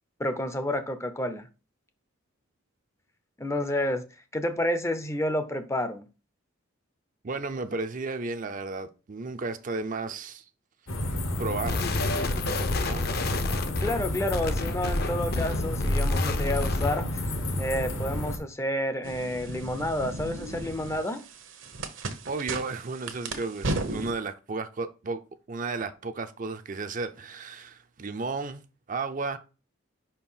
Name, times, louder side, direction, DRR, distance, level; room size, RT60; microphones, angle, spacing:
voice 1, 0.2-1.5 3.4-4.0 4.3-6.1 13.8-21.2, left 1 dB, 15° left, 0.5 m, -30 dB
voice 2, 7.2-10.4 11.4-11.8 12.8-13.0 22.3-25.2 25.5-28.6 28.9-29.4, right 3 dB, 40° right, 0.5 m, -33 dB
sound 1, 10.9-18.4, left 1 dB, 75° left, 1.3 m, -31 dB
sound 2, 11.7-17.1, left 2 dB, 50° left, 0.7 m, -29 dB
sound 3, 19.0-24.1, right 2 dB, 70° right, 1.0 m, -35 dB
5.4 x 4.4 x 5.5 m
head